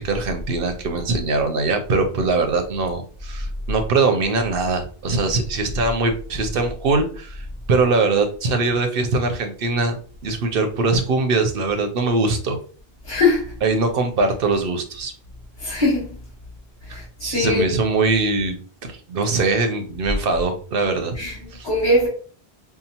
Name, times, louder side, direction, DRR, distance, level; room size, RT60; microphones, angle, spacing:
voice 1, 0.0-9.9 10.2-12.6 13.6-15.1 16.9-21.1 21.5-21.7, right 3 dB, 65° right, 0.8 m, -22 dB
voice 2, 13.0-13.5 15.6-16.1 16.8-17.7 21.1-22.1, left 2 dB, 25° left, 1.7 m, -21 dB
5.6 x 2.1 x 2.8 m
omnidirectional pair, 1.1 m